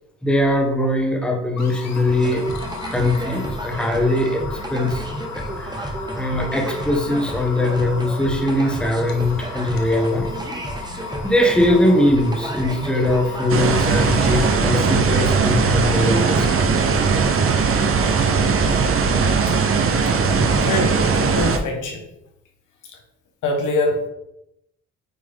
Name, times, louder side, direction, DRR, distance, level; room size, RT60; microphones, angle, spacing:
voice 1, 0.2-2.5 2.9-5.3 5.6-10.3 11.2-16.8 20.4-20.5, left 1 dB, 5° left, 1 dB, 1.3 m, -21 dB
sound 1, 1.6-14.6, left 5 dB, 60° left, 1.0 m, -36 dB
sound 2, 2.1-16.9, right 1 dB, 15° right, 1.0 m, -31 dB
sound 3, 13.5-21.6, right 5 dB, 45° right, 0.8 m, -19 dB
voice 2, 20.6-22.0 23.4-24.1, left 2 dB, 80° left, 2 dB, 1.4 m, -23 dB
8.7 x 3.3 x 3.6 m, 0.84 s
cardioid pair, 90°, 30 cm